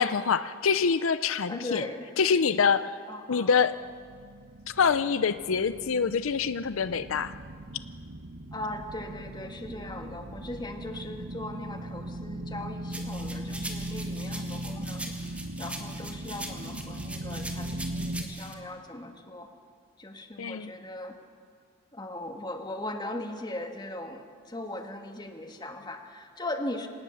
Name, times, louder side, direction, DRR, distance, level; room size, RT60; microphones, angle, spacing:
voice 1, 0.0-1.9 2.2-3.0 3.3-3.8 4.7-7.3 20.4-20.7, left 6 dB, 85° left, 13 dB, 0.6 m, -25 dB
voice 2, 1.5-2.1 3.1-3.5 8.5-15.1 15.6-19.5 20.0-21.1 21.9-26.9, left 1 dB, 20° left, 4 dB, 1.7 m, -39 dB
sound 1, 3.7-18.2, right 1 dB, 75° right, 2.0 m, -39 dB
sound 2, 12.9-18.5, right 1 dB, 5° right, 1.9 m, -41 dB
25.5 x 18.5 x 7.1 m, 2.1 s
head